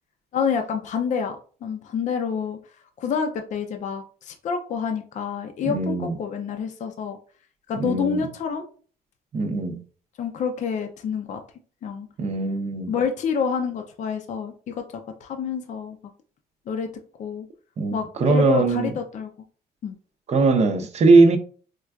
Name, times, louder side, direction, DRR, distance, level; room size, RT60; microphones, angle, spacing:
voice 1, 0.3-2.6 3.0-7.2 7.7-8.6 10.2-11.4 11.8-12.1 12.9-16.0 16.7-16.9 17.2-17.5 17.9-19.3 19.8-20.0, left 6 dB, 45° left, 0.5 m, -28 dB
voice 2, 5.6-6.1 7.8-8.2 9.3-9.8 12.2-12.9 17.8-18.9 20.3-21.4, right 3 dB, 40° right, 0.6 m, -20 dB
4.4 x 2.4 x 2.3 m
cardioid pair, 110°, 17 cm